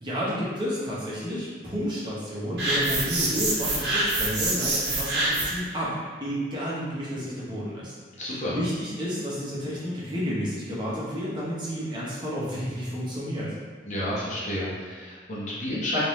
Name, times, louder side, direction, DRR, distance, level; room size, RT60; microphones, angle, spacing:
voice 1, 0.0-8.0 8.3-13.5, equal, 25° right, -8 dB, 0.9 m, -31 dB
sound 1, 2.6-5.7, right 2 dB, 65° right, 0.8 m, -26 dB
voice 2, 8.2-8.6 13.8-16.0, left 1 dB, 40° left, -7 dB, 0.8 m, -30 dB
3.7 x 2.6 x 3.0 m, 1.5 s
head